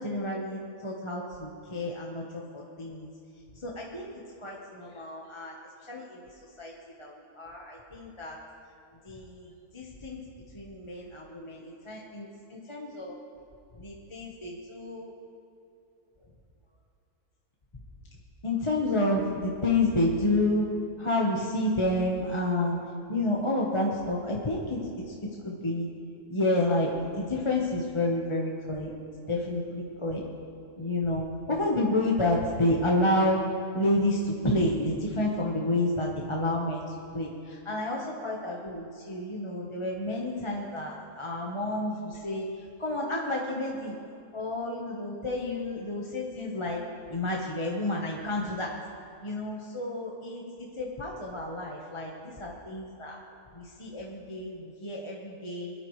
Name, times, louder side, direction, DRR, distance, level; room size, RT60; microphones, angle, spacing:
voice 1, 0.0-3.1 3.5-4.1 4.4-6.2 6.6-6.7 7.0-8.4 9.0-10.2 10.5-13.2 13.7-15.2 18.4-20.7 21.0-22.8 23.1-24.8 25.1-25.2 25.4-25.9 26.3-28.9 29.3-30.2 30.8-33.4 33.7-43.9 44.3-46.8 47.1-48.7 49.2-53.2 53.5-55.7, left 1 dB, 20° left, -2 dB, 1.0 m, -30 dB
21.5 x 12.5 x 3.2 m, 2.5 s
omnidirectional pair, 1.7 m